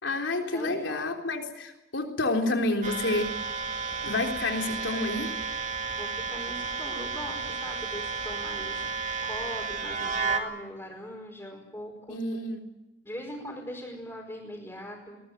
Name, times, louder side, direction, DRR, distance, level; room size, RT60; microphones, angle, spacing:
voice 1, 0.0-3.3 4.0-5.3 12.1-12.6, left 2 dB, 90° left, 3 dB, 3.8 m, -29 dB
voice 2, 0.5-1.1 5.9-12.2 13.0-15.2, equal, 15° left, -2 dB, 4.8 m, -41 dB
sound 1, 2.8-10.4, right 4 dB, 40° right, 2.4 m, -32 dB
22.0 x 20.0 x 8.0 m, 1.0 s
head